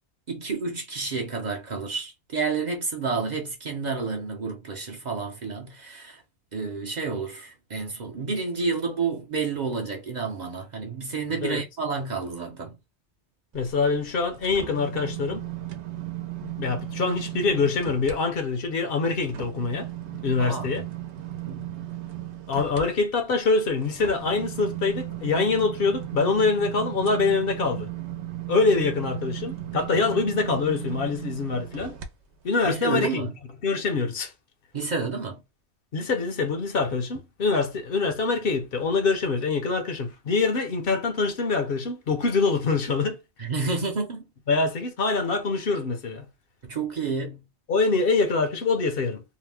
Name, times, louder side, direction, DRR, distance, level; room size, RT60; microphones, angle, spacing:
voice 1, 0.3-6.2 6.5-12.8 20.4-20.8 21.5-21.7 32.6-33.3 34.7-35.4 43.4-44.3 46.6-47.5, right 4 dB, 50° right, 0.6 m, -30 dB
voice 2, 13.5-15.5 16.4-19.9 20.2-20.8 22.5-27.9 28.5-32.0 32.4-33.3 33.6-34.3 35.9-43.2 44.5-46.3 47.7-49.2, left 4 dB, 60° left, 0.9 m, -25 dB
sound 1, 13.5-18.2 18.6-32.1 32.6-32.7, right 13 dB, 85° right, 0.9 m, -36 dB
2.8 x 2.0 x 3.2 m
omnidirectional pair, 1.1 m